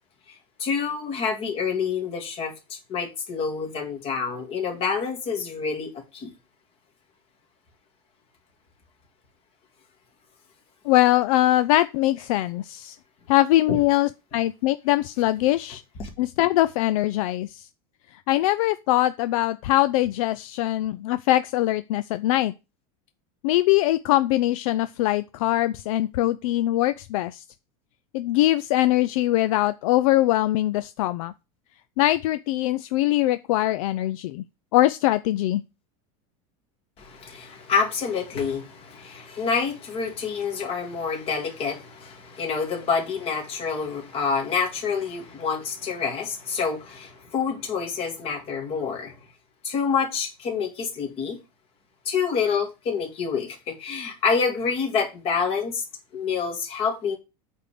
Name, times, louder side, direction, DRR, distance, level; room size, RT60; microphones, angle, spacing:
voice 1, 0.6-6.3 13.7-13.8 16.0-16.1 37.0-49.1 49.6-51.4 52.1-55.8 56.1-57.2, left 5 dB, 30° left, 2.2 m, -27 dB
voice 2, 10.9-13.0 13.3-15.8 16.2-17.7 18.3-22.5 23.4-27.4 28.1-31.3 32.0-34.4 34.7-35.6, left 15 dB, 60° left, 0.5 m, -22 dB
8.7 x 3.7 x 6.7 m
supercardioid pair, 165°, 19 cm